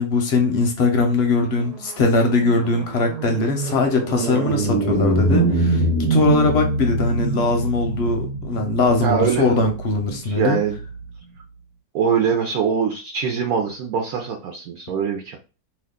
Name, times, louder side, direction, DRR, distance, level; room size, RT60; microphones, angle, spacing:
voice 1, 0.0-5.8 6.1-10.6, left 3 dB, 60° left, 0.7 m, -20 dB
sound 1, 1.5-11.0, right 2 dB, 85° right, 1.3 m, -24 dB
voice 2, 9.0-9.7 10.1-10.8 11.9-15.4, right 6 dB, 70° right, 1.0 m, -23 dB
2.7 x 2.3 x 3.6 m
omnidirectional pair, 1.7 m